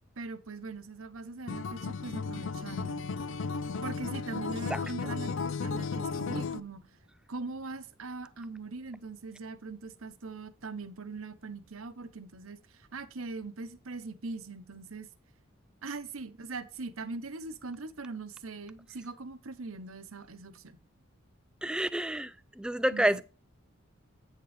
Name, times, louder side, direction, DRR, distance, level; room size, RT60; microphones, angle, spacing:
voice 1, 0.2-3.0 3.8-6.8 7.3-15.1 15.8-20.8 22.9-23.2, right 3 dB, 85° right, 1.0 m, -41 dB
Acoustic guitar, 1.5-6.6, left 4 dB, 65° left, 0.5 m, -34 dB
voice 2, 21.6-23.2, right 1 dB, 5° right, 0.3 m, -29 dB
9.1 x 6.7 x 3.3 m
head